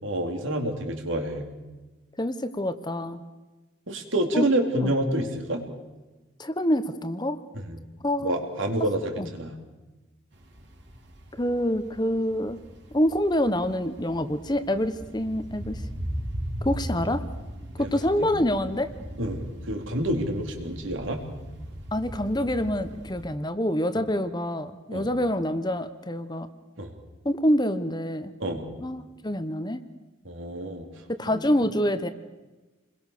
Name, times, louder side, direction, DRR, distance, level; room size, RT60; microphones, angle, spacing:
voice 1, 0.0-1.5 3.9-5.6 7.5-7.8 8.2-9.5 17.8-17.9 18.2-18.3 19.2-21.2 24.9-25.1 26.8-26.9 28.4-28.7 30.2-30.9 31.3-31.4, right 1 dB, 75° right, 3 dB, 3.8 m, -28 dB
voice 2, 2.2-3.2 4.3-4.5 4.8-4.9 6.4-7.4 8.0-8.4 9.2-9.3 11.4-12.6 12.9-15.8 16.6-17.2 17.8-18.9 21.9-26.5 27.2-28.3 28.8-29.8 31.1-32.1, left 1 dB, 20° left, 10 dB, 1.1 m, -26 dB
sound 1, 10.3-23.2, equal, 60° right, 3.9 m, -38 dB
28.5 x 21.5 x 6.7 m, 1.2 s
head